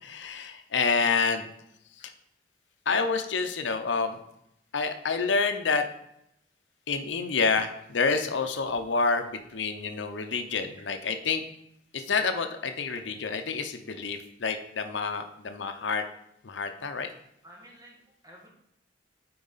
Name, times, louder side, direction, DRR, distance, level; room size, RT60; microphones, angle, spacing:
voice 1, 0.0-1.5 2.0-2.1 2.9-4.2 4.7-5.8 6.9-11.4 11.9-16.0 16.4-17.1, left 4 dB, 80° left, 7 dB, 0.7 m, -28 dB
voice 2, 17.4-18.5, equal, 20° right, -2 dB, 1.9 m, -52 dB
8.6 x 4.7 x 4.0 m, 0.77 s
head